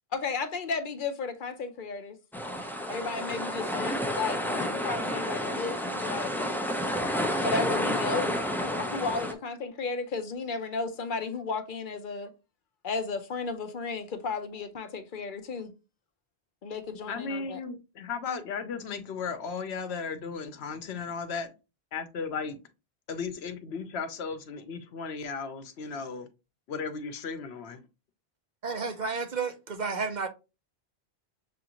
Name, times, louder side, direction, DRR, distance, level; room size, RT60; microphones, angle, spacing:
voice 1, 0.1-2.2 2.9-6.3 7.4-8.3 8.6-12.3 12.8-15.7 16.6-17.6, left 4 dB, 60° left, 0.7 m, -34 dB
sound 1, 2.3-9.3, equal, 5° left, 0.3 m, -30 dB
voice 2, 17.1-21.5 21.9-22.6 23.1-26.3 26.7-27.8, left 5 dB, 80° left, 1.0 m, -35 dB
voice 3, 28.6-30.3, right 4 dB, 50° right, 0.7 m, -31 dB
6.8 x 2.5 x 2.9 m
omnidirectional pair, 1.1 m